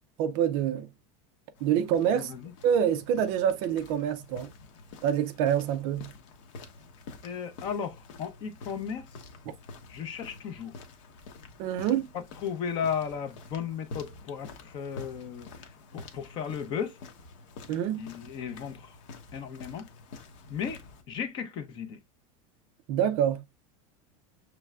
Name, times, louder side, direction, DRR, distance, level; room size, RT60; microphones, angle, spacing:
voice 1, 0.2-0.9 1.6-2.3 2.6-4.5 5.0-6.1 11.6-12.1 17.7-18.1 22.9-23.4, right 9 dB, 35° right, 0.4 m, -26 dB
sound 1, 1.6-21.0, left 3 dB, 65° left, 1.0 m, -48 dB
voice 2, 2.1-2.5 7.2-9.0 9.9-10.7 12.1-15.5 15.9-17.0 18.0-19.0 19.3-19.9 20.5-22.0, left 7 dB, 30° left, 0.5 m, -35 dB
6.0 x 3.2 x 2.3 m
supercardioid pair, 175°, 17 cm